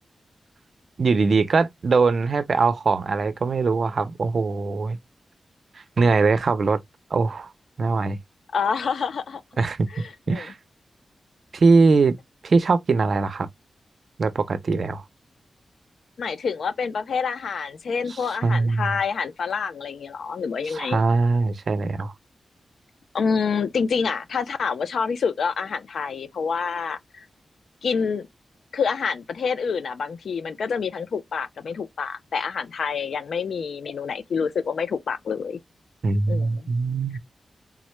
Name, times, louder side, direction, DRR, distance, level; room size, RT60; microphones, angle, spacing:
voice 1, 1.0-5.0 5.7-6.8 7.1-7.5 7.8-8.2 9.6-9.9 10.3-10.6 11.5-12.2 12.4-13.5 14.2-15.0 18.1-19.0 20.6-22.1 36.0-37.2, right 4 dB, 50° right, 0.4 m, -21 dB
voice 2, 8.5-9.4 9.9-10.5 16.2-21.0 23.1-27.3 27.8-28.3 28.7-35.6 36.3-36.7, left 5 dB, 75° left, 0.4 m, -27 dB
3.6 x 2.1 x 3.0 m
wide cardioid pair, 150°, 0 cm